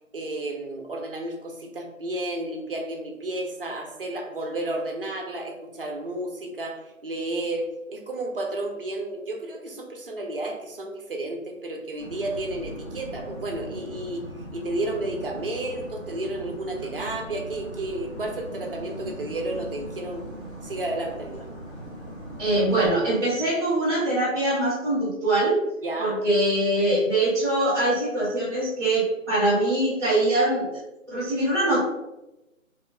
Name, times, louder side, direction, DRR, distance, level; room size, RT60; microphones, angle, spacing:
voice 1, 0.1-14.2 14.5-20.2 20.6-21.5 25.8-26.2, right 1 dB, 45° right, 2 dB, 0.5 m, -32 dB
sound 1, 12.0-22.9, right 1 dB, 25° left, 1.3 m, -39 dB
voice 2, 22.4-25.6 26.0-30.7 31.1-31.8, right 1 dB, 5° left, -11 dB, 1.4 m, -23 dB
3.1 x 3.0 x 2.3 m, 0.96 s
figure-of-eight pair, 160°, 41 cm